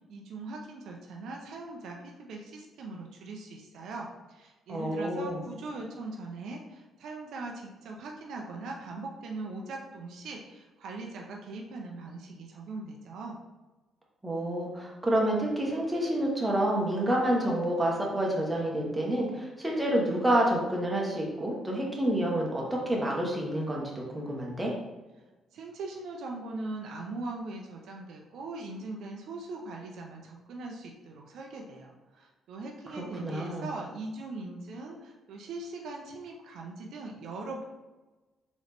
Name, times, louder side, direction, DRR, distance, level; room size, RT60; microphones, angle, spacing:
voice 1, 0.1-13.4 25.5-37.7, right 3 dB, 75° right, 0 dB, 0.6 m, -40 dB
voice 2, 4.7-5.4 14.2-23.8 24.1-24.7 33.2-33.7, right 1 dB, 15° right, -2 dB, 1.1 m, -28 dB
3.8 x 3.0 x 3.4 m, 1.1 s
cardioid pair, 90°, 0 cm